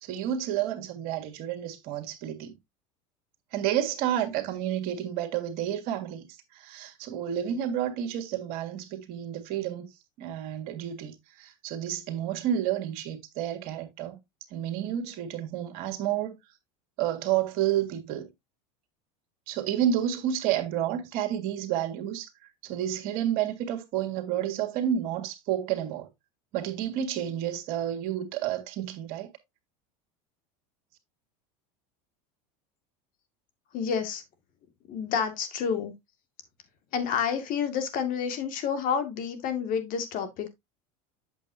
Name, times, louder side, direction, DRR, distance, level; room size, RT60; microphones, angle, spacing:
voice 1, 0.0-2.6 3.5-6.2 6.5-9.9 10.2-14.2 14.5-16.4 17.0-18.3 19.5-22.3 22.6-26.1 26.5-29.3, right 10 dB, 60° right, 1.9 m, -30 dB
voice 2, 33.7-34.2 34.9-35.9 36.9-40.5, left 7 dB, 50° left, 2.0 m, -29 dB
8.2 x 6.8 x 2.7 m
supercardioid pair, 110°, 18 cm